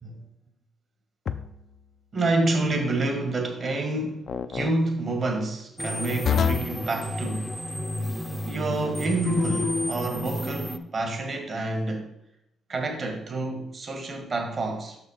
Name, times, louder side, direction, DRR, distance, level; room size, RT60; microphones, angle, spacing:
sound 1, 1.3-1.7 4.3-4.7 6.3-6.8 9.3-10.0, left 7 dB, 55° left, 0.5 m, -27 dB
voice 1, 2.1-7.5 8.5-12.1 12.7-15.0, right 2 dB, 40° right, 3 dB, 1.8 m, -28 dB
sound 2, 5.8-10.8, equal, ahead, 0.8 m, -32 dB
6.2 x 5.9 x 5.0 m, 0.80 s
cardioid pair, 90°, 0 cm